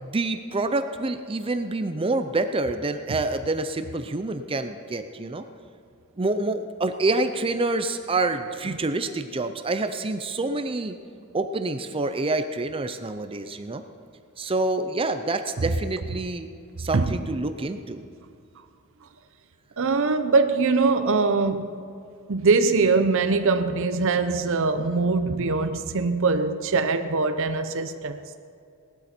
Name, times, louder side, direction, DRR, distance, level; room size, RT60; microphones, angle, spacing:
voice 1, 0.0-5.4 6.2-10.9 11.3-13.8 14.4-16.5 16.8-18.0, right 2 dB, 25° right, 0.6 m, -27 dB
voice 2, 19.8-21.8 22.3-28.4, right 4 dB, 65° right, 0.7 m, -22 dB
18.0 x 12.0 x 4.4 m
head